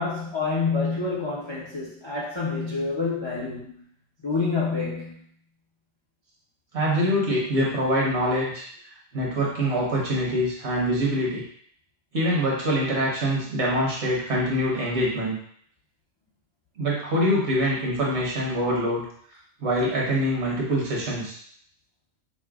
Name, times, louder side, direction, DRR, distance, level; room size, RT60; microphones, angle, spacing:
voice 1, 0.0-3.8 4.2-5.2, left 4 dB, 35° left, -6 dB, 0.4 m, -27 dB
voice 2, 6.7-8.6 9.1-11.4 12.1-15.4 16.8-19.0 19.6-21.3, equal, 65° right, -4 dB, 1.3 m, -24 dB
4.9 x 2.1 x 2.3 m, 0.62 s
omnidirectional pair, 1.3 m